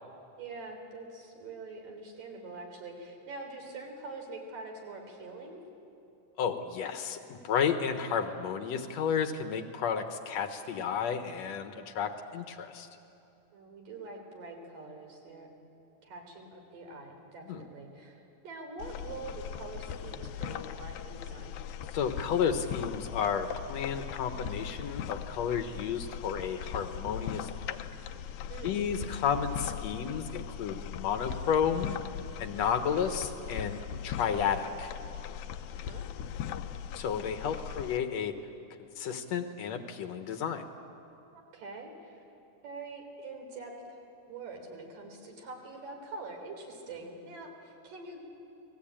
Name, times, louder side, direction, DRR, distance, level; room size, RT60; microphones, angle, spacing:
voice 1, 0.4-5.6 13.5-15.5 16.0-21.6 28.5-28.8 35.6-36.1 37.6-37.8 41.3-42.2 42.6-44.0 44.3-48.3, right 3 dB, 70° right, 3 dB, 5.3 m, -44 dB
voice 2, 6.4-12.9 17.5-17.6 21.9-27.8 28.6-32.0 32.4-34.9 36.9-38.3 38.8-40.6, left 7 dB, 60° left, 7 dB, 2.0 m, -32 dB
sound 1, 18.8-38.0, left 9 dB, 80° left, 2.5 m, -39 dB
29.5 x 20.0 x 8.8 m, 2.7 s
omnidirectional pair, 4.0 m